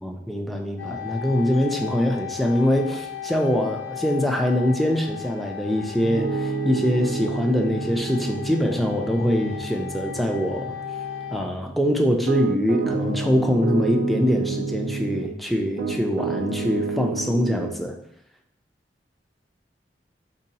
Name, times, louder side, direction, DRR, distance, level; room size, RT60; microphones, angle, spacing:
voice 1, 0.0-10.7 11.3-17.9, equal, ahead, 2 dB, 0.3 m, -23 dB
sound 1, 0.8-11.5, left 9 dB, 85° left, 0.5 m, -36 dB
Piano, 6.0-15.3 15.8-17.8, right 4 dB, 90° right, 0.4 m, -30 dB
3.7 x 2.7 x 2.8 m, 0.74 s
head